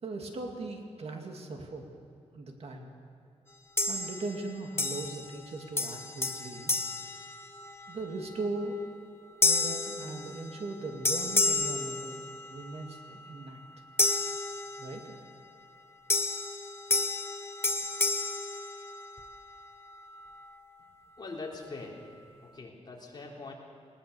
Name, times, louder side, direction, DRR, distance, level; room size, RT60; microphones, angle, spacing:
voice 1, 0.0-1.9 2.3-2.9 3.8-6.7 7.9-8.8 9.4-13.6 14.8-15.2, right 3 dB, 55° right, 2 dB, 2.3 m, -39 dB
sound 1, 3.8-4.4 4.8-5.5 5.8-7.9 8.4-8.7 9.4-10.7 11.0-12.7 14.0-15.2 16.1-19.3, left 3 dB, 20° left, 1.1 m, -31 dB
voice 2, 21.2-22.0 22.4-23.5, left 3 dB, 35° left, -2 dB, 3.6 m, -42 dB
20.0 x 20.0 x 6.9 m, 2.5 s
wide cardioid pair, 155°, 12 cm